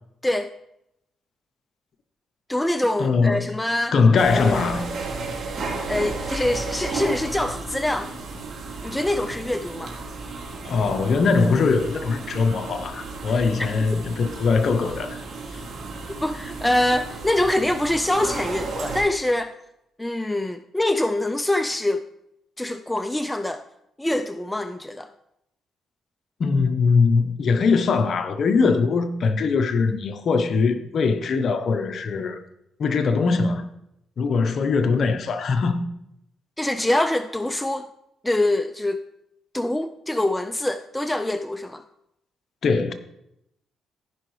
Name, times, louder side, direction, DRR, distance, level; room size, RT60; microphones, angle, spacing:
voice 1, 2.5-3.9 4.3-4.7 5.9-8.2 8.8-10.0 13.3-13.5 16.2-19.5 20.0-22.0 22.6-23.6 24.0-25.1 36.6-37.9 38.2-39.0 39.5-41.8, left 1 dB, 10° left, 0.4 m, -24 dB
voice 2, 3.0-3.5 3.9-4.9 10.6-15.2 15.5-15.6 26.4-32.4 32.8-33.6 34.2-35.8 42.6-42.9, left 4 dB, 55° left, 0.8 m, -21 dB
sound 1, 4.2-19.0, right 3 dB, 55° right, 2.2 m, -33 dB
14.5 x 5.5 x 3.2 m
cardioid pair, 90°, 0 cm